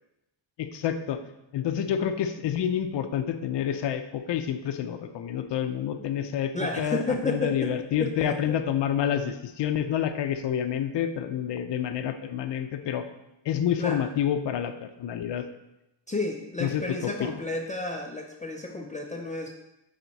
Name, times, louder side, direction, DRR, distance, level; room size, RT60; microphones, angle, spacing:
voice 1, 0.6-1.2 1.5-13.0 13.4-15.5 16.6-17.4, left 9 dB, 65° left, 8 dB, 0.7 m, -28 dB
voice 2, 6.5-7.7 8.0-8.6 13.8-14.0 16.1-19.5, left 2 dB, 15° left, 1 dB, 0.4 m, -31 dB
9.1 x 4.2 x 4.1 m, 0.91 s
wide cardioid pair, 175°, 46 cm